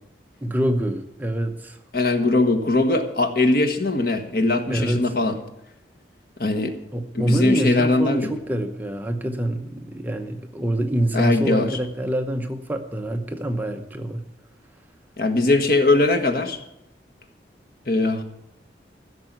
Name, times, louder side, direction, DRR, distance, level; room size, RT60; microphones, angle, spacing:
voice 1, 0.4-1.8 4.7-5.0 6.9-14.2, right 1 dB, 10° right, 5 dB, 0.9 m, -26 dB
voice 2, 1.9-5.4 6.4-6.7 7.1-8.3 11.1-11.8 15.2-16.6 17.9-18.2, left 2 dB, 55° left, 7 dB, 1.4 m, -20 dB
15.5 x 6.8 x 9.2 m, 0.83 s
head